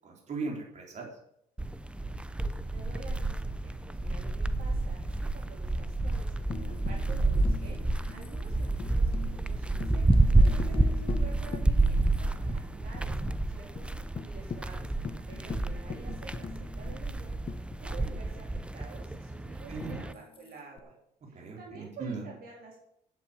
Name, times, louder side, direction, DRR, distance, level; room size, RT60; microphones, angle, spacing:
voice 1, 0.0-1.1 10.5-10.8 12.1-12.5 15.3-15.6 19.7-20.0 21.3-22.2, right 4 dB, 45° right, 0 dB, 3.9 m, -39 dB
sound 1, 1.6-20.1, right 2 dB, 5° right, 0.6 m, -29 dB
voice 2, 2.7-12.0 12.3-17.3 17.8-20.9 21.3-22.8, right 5 dB, 65° right, -1 dB, 3.6 m, -50 dB
Tambourine, 6.5-12.2 12.5-12.6 12.9-13.4 13.7-13.9 14.2-18.3 19.8-20.8, left 6 dB, 30° left, 0.8 m, -42 dB
8.7 x 8.5 x 8.5 m, 0.74 s
cardioid pair, 110°, 17 cm